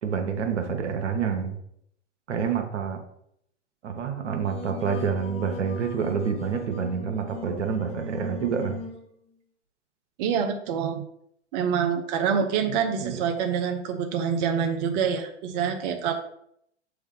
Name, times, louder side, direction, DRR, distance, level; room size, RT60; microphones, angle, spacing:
voice 1, 0.0-1.6 2.3-3.0 3.8-8.8 12.7-13.2, right 6 dB, 75° right, 5 dB, 1.1 m, -28 dB
Singing, 4.2-9.0, left 2 dB, 15° left, 0.8 m, -38 dB
voice 2, 10.2-11.0 11.5-16.1, right 7 dB, 40° right, 4 dB, 0.7 m, -26 dB
7.4 x 3.5 x 3.8 m, 0.72 s
hypercardioid pair, 115°, 36 cm